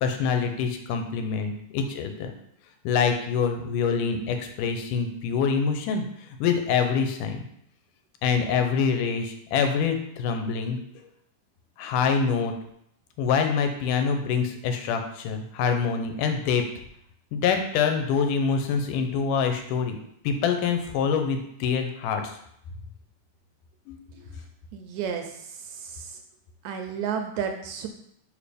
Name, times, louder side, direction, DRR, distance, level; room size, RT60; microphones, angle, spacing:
voice 1, 0.0-2.3 2.8-6.0 6.4-7.4 8.2-10.8 11.8-12.5 13.2-16.6 17.3-20.0 20.2-22.4 23.9-24.0, left 6 dB, 85° left, 5 dB, 2.3 m, -25 dB
voice 2, 24.7-26.2 26.6-27.9, right 7 dB, 80° right, 4 dB, 1.8 m, -32 dB
5.2 x 4.9 x 5.0 m, 0.72 s
omnidirectional pair, 3.6 m